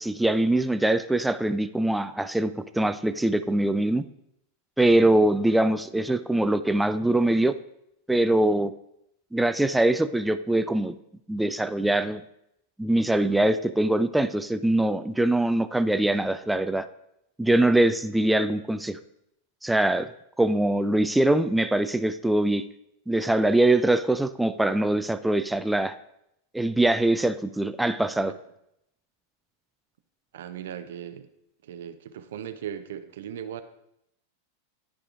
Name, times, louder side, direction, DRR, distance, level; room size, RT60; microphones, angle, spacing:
voice 1, 0.0-4.0 4.8-7.5 8.1-8.7 9.3-11.0 11.3-12.2 12.8-16.9 17.4-19.0 19.6-20.1 20.4-22.6 23.1-26.0 26.5-28.3, right 1 dB, 5° right, 11 dB, 0.3 m, -23 dB
voice 2, 30.3-31.3 31.6-33.6, right 9 dB, 60° right, 9 dB, 0.5 m, -38 dB
12.5 x 4.8 x 2.5 m, 0.79 s
figure-of-eight pair, 90°, 0 cm